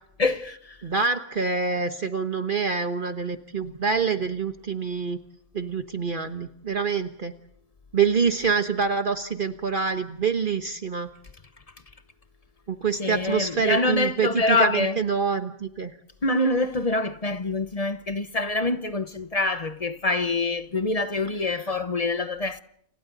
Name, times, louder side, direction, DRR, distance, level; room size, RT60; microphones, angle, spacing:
voice 1, 0.2-0.8 13.0-15.0 16.2-22.6, left 2 dB, 35° left, 1.0 m, -25 dB
voice 2, 0.8-5.2 5.5-7.3 7.9-11.1 12.7-15.9, right 5 dB, 45° right, 1.3 m, -26 dB
29.5 x 27.5 x 4.0 m
omnidirectional pair, 1.2 m